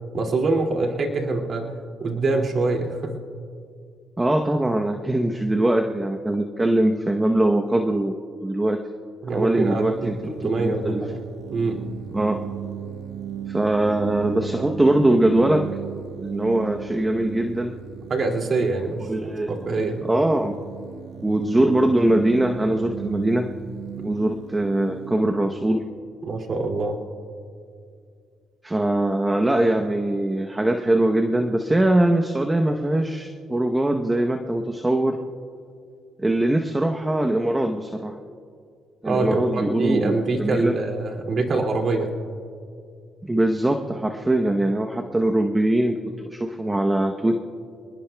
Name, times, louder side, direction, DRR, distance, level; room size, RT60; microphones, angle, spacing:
voice 1, 0.1-1.6 2.0-3.2 9.2-11.2 11.5-11.8 18.1-19.1 19.5-20.0 26.2-27.0 39.0-42.1, right 3 dB, 50° right, 2 dB, 2.4 m, -24 dB
voice 2, 4.2-8.8 9.3-11.0 12.1-12.4 13.5-15.6 16.2-17.7 19.0-19.6 20.0-20.6 21.2-23.5 24.0-25.9 28.6-35.2 36.2-38.2 39.0-40.8 43.2-46.0 46.3-47.3, right 1 dB, 15° right, 4 dB, 0.9 m, -22 dB
sound 1, 9.3-26.9, right 9 dB, 90° right, 0.9 m, -37 dB
27.5 x 20.0 x 2.3 m, 2.3 s
cardioid pair, 90°, 0 cm